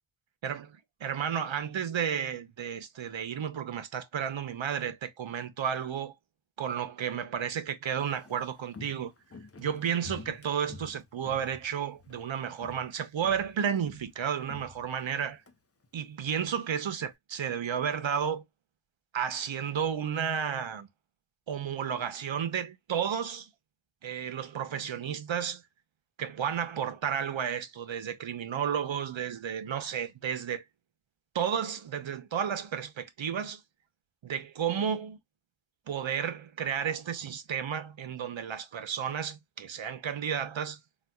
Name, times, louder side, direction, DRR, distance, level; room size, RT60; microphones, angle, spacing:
voice 1, 1.0-6.1 6.6-9.1 9.6-15.4 15.9-18.4 19.1-20.9 21.5-23.5 24.0-25.6 26.2-30.6 31.3-33.6 34.2-35.2 35.9-40.8, right 8 dB, 65° right, 0.8 m, -32 dB
Walk footsteps, 8.0-12.3 12.6-12.9 13.2-15.5 15.8-15.9, left 3 dB, 30° left, 0.8 m, -49 dB
4.2 x 2.4 x 2.2 m
wide cardioid pair, 105°, 49 cm